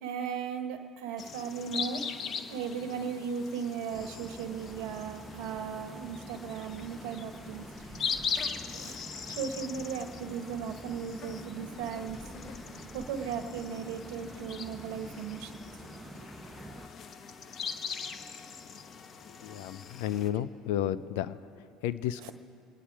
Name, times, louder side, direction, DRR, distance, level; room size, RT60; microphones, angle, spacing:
voice 1, 0.0-2.1 2.5-7.7 8.7-12.2 12.9-15.6 22.2-22.3, right 7 dB, 70° right, 8 dB, 1.2 m, -37 dB
sound 1, 1.2-20.3, left 6 dB, 45° left, 1.0 m, -41 dB
sound 2, 3.9-16.9, right 2 dB, 15° right, 0.9 m, -47 dB
voice 2, 19.4-21.4 21.8-22.3, left 11 dB, 75° left, 15 dB, 0.5 m, -32 dB
26.5 x 9.9 x 4.7 m, 2.5 s
hypercardioid pair, 75°, 0 cm